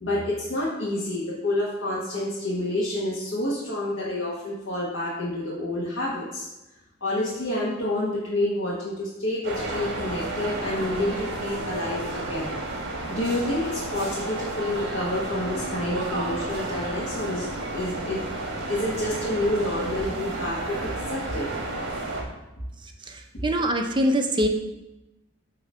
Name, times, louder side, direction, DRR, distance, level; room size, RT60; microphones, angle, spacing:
voice 1, 0.0-6.5 7.0-12.5 13.1-17.5 17.7-18.2 18.7-21.5 23.3-23.5, left 1 dB, 75° left, -7 dB, 1.3 m, -28 dB
sound 1, 9.4-22.2, right 2 dB, 60° right, 1.3 m, -32 dB
voice 2, 23.1-24.5, equal, 25° right, 3 dB, 0.6 m, -24 dB
7.8 x 2.9 x 5.4 m, 0.97 s
head